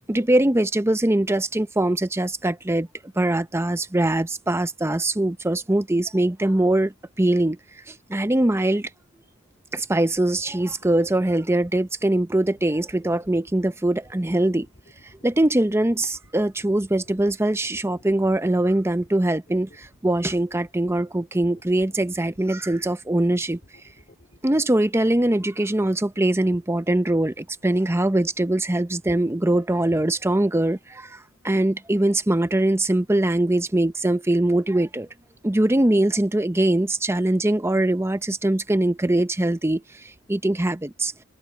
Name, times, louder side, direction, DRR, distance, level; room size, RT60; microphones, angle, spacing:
voice 1, 0.1-2.9 3.2-7.6 7.9-8.9 9.7-14.7 15.2-23.6 24.4-35.1 35.4-41.1, right 1 dB, 10° right, 0.7 m, -22 dB
sound 1, 10.1-24.6, left 1 dB, 45° left, 4.7 m, -54 dB
open air
head